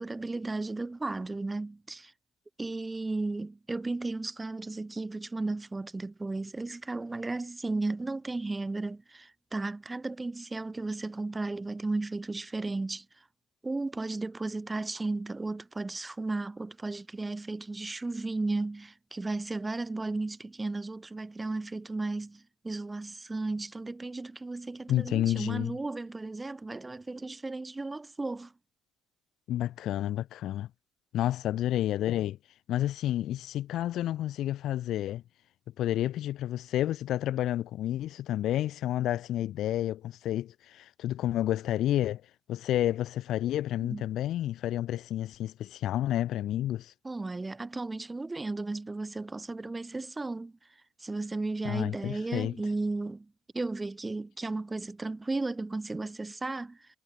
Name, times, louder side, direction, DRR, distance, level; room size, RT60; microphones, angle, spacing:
voice 1, 0.0-2.1 2.6-13.2 13.6-28.5 43.8-44.0 47.0-50.5 51.0-56.9, right 2 dB, 15° right, 3.6 m, -34 dB
voice 2, 24.9-25.7 29.5-30.7 31.1-32.4 32.7-35.2 35.8-42.2 42.5-46.9 51.6-52.5, left 13 dB, 70° left, 0.9 m, -30 dB
cardioid pair, 115°, 0 cm